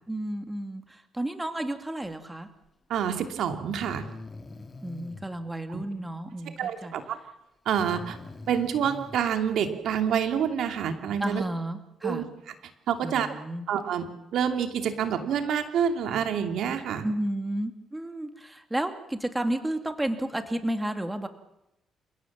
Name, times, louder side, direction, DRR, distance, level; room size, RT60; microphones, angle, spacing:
voice 1, 0.1-2.5 4.8-6.9 11.2-12.3 13.0-13.7 17.0-21.3, right 1 dB, 10° right, 7 dB, 2.5 m, -32 dB
Breathing, 2.9-3.0 3.8-5.3 7.7-9.2, left 3 dB, 25° left, 2.5 m, -43 dB
voice 2, 2.9-4.0 5.7-5.8 6.6-7.2 7.6-8.2 8.5-11.4 12.0-12.2 12.9-13.3 13.7-14.1 14.3-17.1, right 8 dB, 75° right, 7 dB, 2.7 m, -27 dB
28.5 x 17.0 x 7.5 m, 0.86 s
cardioid pair, 90°, 0 cm